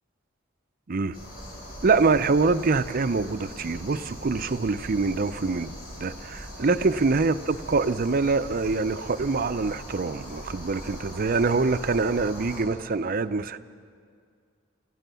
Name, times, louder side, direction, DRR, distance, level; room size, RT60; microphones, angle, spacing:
sound 1, 1.1-12.6, equal, 50° left, 7.3 m, -41 dB
voice 1, 1.8-5.7 6.0-13.6, right 4 dB, 45° right, 12 dB, 0.5 m, -25 dB
28.5 x 15.0 x 6.9 m, 2.1 s
head